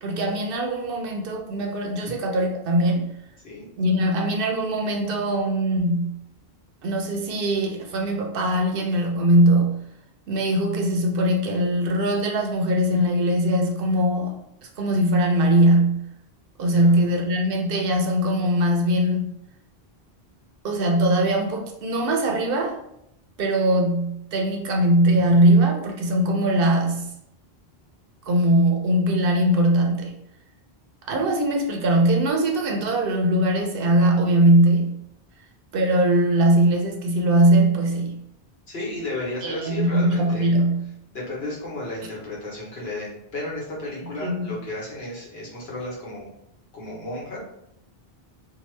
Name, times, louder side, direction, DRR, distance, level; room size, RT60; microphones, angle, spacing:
voice 1, 0.0-3.1 3.8-6.1 6.8-9.7 10.3-14.3 14.8-16.0 16.6-19.3 20.6-22.8 23.4-27.0 28.3-30.1 31.1-34.9 35.7-38.2 39.4-40.9 44.2-44.4, right 1 dB, 70° right, 2 dB, 0.7 m, -21 dB
voice 2, 16.7-17.0 38.7-40.5 41.1-46.3 46.7-47.4, left 2 dB, 80° left, -4 dB, 1.3 m, -33 dB
2.8 x 2.3 x 3.1 m, 0.78 s
omnidirectional pair, 1.0 m